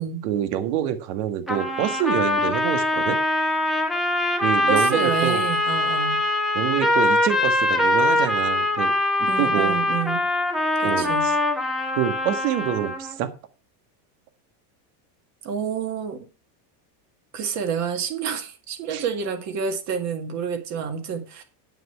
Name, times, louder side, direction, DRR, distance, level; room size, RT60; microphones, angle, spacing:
voice 1, 0.2-3.2 4.4-5.4 6.5-8.9 9.2-9.8 10.8-11.4 11.9-13.3 18.9-19.0, right 10 dB, 65° right, 9 dB, 1.7 m, -26 dB
sound 1, 1.5-13.2, left 1 dB, ahead, 1.2 m, -23 dB
voice 2, 4.7-6.2 9.3-10.2 10.8-11.3 15.4-16.3 17.3-21.4, right 7 dB, 35° right, 6 dB, 1.9 m, -28 dB
9.2 x 8.6 x 4.7 m, 0.34 s
cardioid pair, 170°, 47 cm